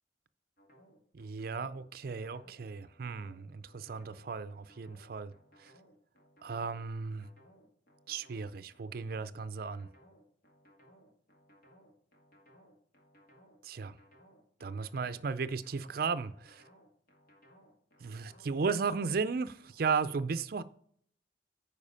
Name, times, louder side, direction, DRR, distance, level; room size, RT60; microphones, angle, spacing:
sound 1, 0.6-19.8, equal, 55° left, 2.2 m, -62 dB
voice 1, 1.1-5.3 5.6-5.7 6.4-7.3 8.1-9.9 13.6-14.0 14.6-16.6 18.0-20.6, right 5 dB, 55° right, 0.4 m, -35 dB
9.9 x 4.8 x 5.5 m
head